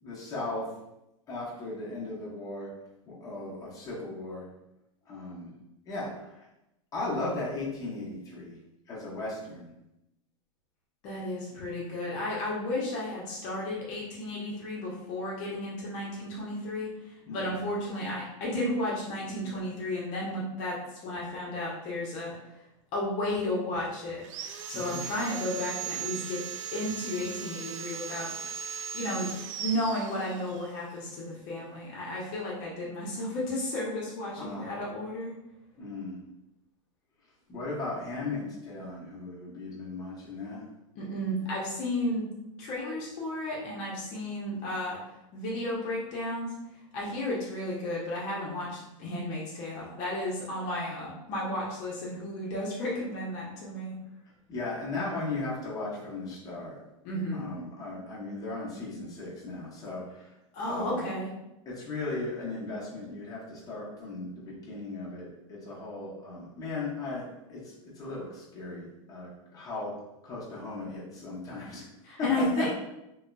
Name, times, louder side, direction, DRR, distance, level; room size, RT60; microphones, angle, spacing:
voice 1, 0.0-0.6 1.3-2.7 3.1-4.4 5.1-5.5 5.9-6.5 6.9-8.6 8.9-9.7 17.3-17.5 24.7-25.0 34.4-34.7 35.8-36.2 37.5-40.6 54.5-56.8 57.3-60.3 60.6-61.1 61.6-67.2 67.5-69.9 70.2-71.9 72.1-72.3 72.6-72.7, left 2 dB, 20° left, -6 dB, 1.0 m, -37 dB
voice 2, 11.0-20.8 21.0-22.3 22.9-24.2 24.7-26.4 26.7-28.3 28.9-29.3 29.6-35.3 40.9-42.3 42.6-45.0 45.3-46.5 46.9-53.9 57.0-57.5 60.5-61.3 72.0-72.7, left 1 dB, 45° left, -5 dB, 0.9 m, -33 dB
Sawing, 24.2-30.7, right 8 dB, 70° right, 0.4 m, -38 dB
3.0 x 2.7 x 2.3 m, 0.89 s
hypercardioid pair, 125°, 17 cm